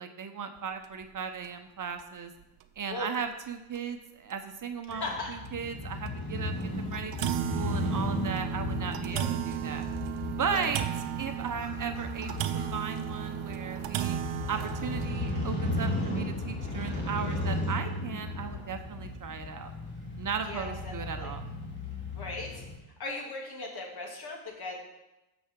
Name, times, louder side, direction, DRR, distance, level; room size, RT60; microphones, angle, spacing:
voice 1, 0.0-2.3 2.8-9.9 10.4-10.8 11.2-12.4 12.7-14.2 14.5-19.7 20.2-21.4, right 6 dB, 40° right, 7 dB, 0.9 m, -36 dB
sound 1, 0.8-1.0 1.4-1.5 2.0-2.1 3.1-3.2 3.8-3.9 4.3-4.4 4.9-5.0 6.1-6.2 6.6-6.7 6.9-16.1, right 12 dB, 85° right, 0.7 m, -35 dB
voice 2, 4.9-5.3 9.1-9.2 10.5-10.7 20.5-21.3 22.1-22.6 23.0-24.8, left 2 dB, 50° left, 0 dB, 2.8 m, -38 dB
Crow / Motorcycle, 4.9-22.8, left 1 dB, 20° left, 3.2 m, -35 dB
sound 2, 11.9-18.7, left 3 dB, 70° left, 1.7 m, -47 dB
14.0 x 5.9 x 3.7 m, 0.99 s
supercardioid pair, 75°, 49 cm